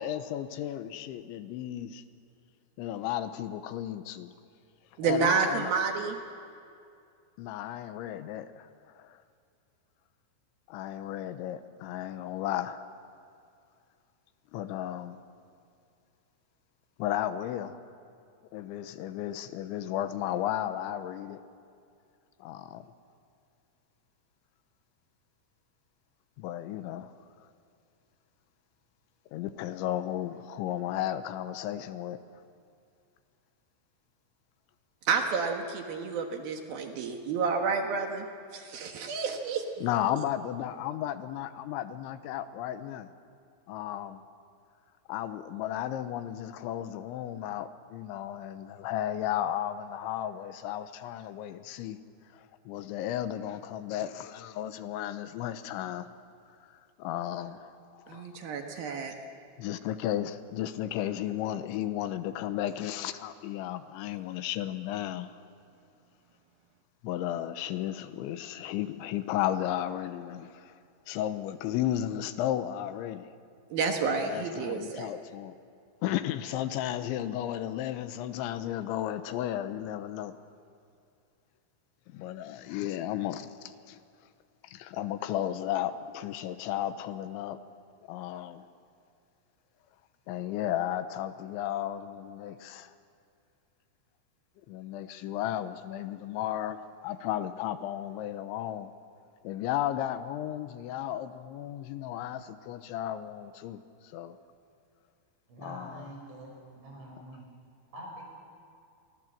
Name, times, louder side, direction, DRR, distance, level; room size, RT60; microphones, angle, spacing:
voice 1, 0.0-2.0 2.8-4.3 5.0-5.7 7.4-9.2 10.7-12.8 14.5-15.2 17.0-17.8 18.5-21.4 22.4-22.8 26.4-27.1 29.3-32.2 39.8-43.1 43.7-44.2 45.1-52.0 52.3-56.1 57.0-58.3 58.8-59.0 59.6-65.3 67.0-70.7 71.1-73.3 74.2-75.5 76.0-80.3 82.1-84.0 84.6-87.6 88.1-88.6 90.3-92.9 94.7-98.9 99.4-103.8 104.1-104.4 105.6-106.1, left 12 dB, 90° left, 11 dB, 3.3 m, -34 dB
voice 2, 5.0-6.2 35.1-38.3 38.5-39.6 58.1-59.1 73.7-75.1, right 5 dB, 65° right, 4 dB, 2.9 m, -30 dB
voice 3, 105.5-107.5 107.9-108.2, right 1 dB, 90° right, 1 dB, 7.9 m, -45 dB
29.0 x 24.0 x 7.6 m, 2.4 s
omnidirectional pair, 5.4 m